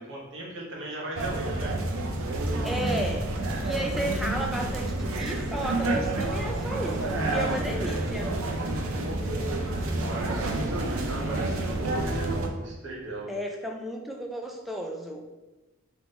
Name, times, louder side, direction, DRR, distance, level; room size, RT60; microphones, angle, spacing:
voice 1, 0.0-1.8 10.0-12.2 12.5-13.3, right 2 dB, 60° right, -3 dB, 1.1 m, -38 dB
sound 1, 1.2-12.5, right 2 dB, 85° right, 0.6 m, -29 dB
voice 2, 2.6-3.3 3.6-8.3 13.3-15.3, equal, ahead, 1 dB, 0.3 m, -33 dB
3.6 x 3.0 x 3.9 m, 1.1 s
head